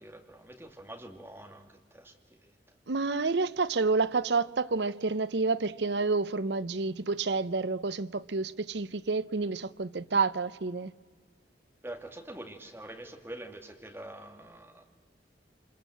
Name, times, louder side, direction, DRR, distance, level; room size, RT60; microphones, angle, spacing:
voice 1, 0.0-2.2 2.4-2.5 11.8-14.8, right 1 dB, 15° right, 2.2 m, -45 dB
voice 2, 2.9-10.9, right 4 dB, 75° right, 0.7 m, -29 dB
28.0 x 26.5 x 7.9 m
head